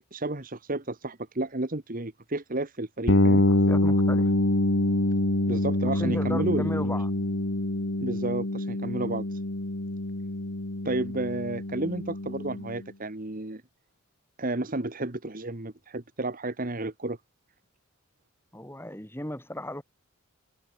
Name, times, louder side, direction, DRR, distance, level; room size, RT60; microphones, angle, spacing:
voice 1, 0.1-3.4 5.5-6.8 8.0-9.3 10.8-13.6 14.4-17.2, right 2 dB, 40° right, 1.5 m, -32 dB
sound 1, 3.1-12.8, left 1 dB, 60° left, 2.0 m, -26 dB
voice 2, 3.7-4.3 5.9-7.1 18.5-19.8, left 1 dB, 10° left, 5.7 m, -35 dB
head